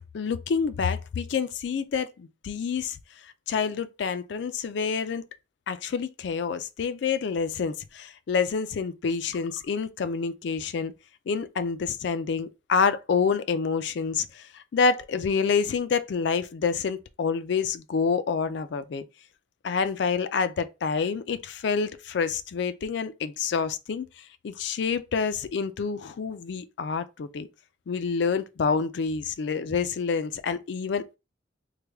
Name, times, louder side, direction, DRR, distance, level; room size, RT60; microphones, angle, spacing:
voice 1, 0.1-3.0 3.5-5.2 5.7-10.9 11.3-19.0 19.6-24.1 24.4-27.5 27.9-31.2, left 5 dB, 70° left, 0.4 m, -27 dB
3.3 x 2.2 x 3.4 m
head